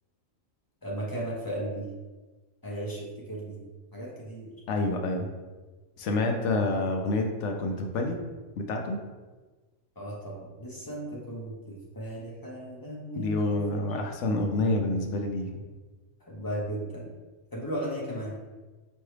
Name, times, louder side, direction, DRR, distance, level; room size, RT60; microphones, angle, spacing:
voice 1, 0.8-1.9 2.6-3.6 3.9-4.5 10.0-13.8 16.3-17.1 17.5-18.3, right 1 dB, 20° left, -5 dB, 0.8 m, -36 dB
voice 2, 4.7-5.3 6.0-8.2 8.6-9.0 13.1-15.6, left 2 dB, 70° left, 3 dB, 0.8 m, -28 dB
4.6 x 3.1 x 3.2 m, 1.3 s
omnidirectional pair, 1.4 m